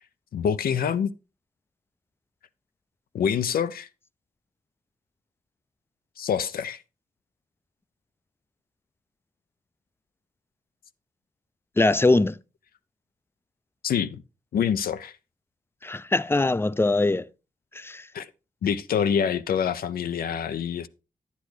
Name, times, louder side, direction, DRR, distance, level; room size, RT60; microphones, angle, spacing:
voice 1, 0.3-1.1 3.1-3.9 6.2-6.8 13.8-14.2 14.5-15.1 18.1-18.3 18.6-20.9, left 8 dB, 80° left, 0.5 m, -26 dB
voice 2, 11.8-12.4 15.8-17.3 17.7-18.1, left 2 dB, 15° left, 0.5 m, -22 dB
10.5 x 8.2 x 3.2 m
supercardioid pair, 45°, 15 cm